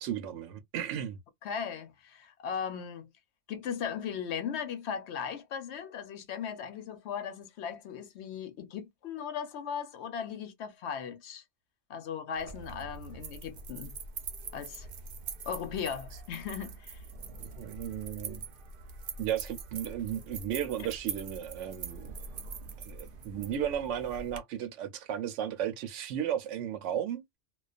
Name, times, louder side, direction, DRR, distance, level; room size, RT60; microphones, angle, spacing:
voice 1, 0.0-1.2 17.4-18.5 19.2-22.2 22.8-27.4, right 10 dB, 85° right, 0.9 m, -35 dB
voice 2, 1.4-3.1 3.5-11.4 11.9-14.0 14.5-14.9 15.5-17.0, left 7 dB, 70° left, 0.8 m, -37 dB
sound 1, 12.4-24.4, right 4 dB, 55° right, 0.7 m, -43 dB
2.3 x 2.2 x 2.4 m
omnidirectional pair, 1.2 m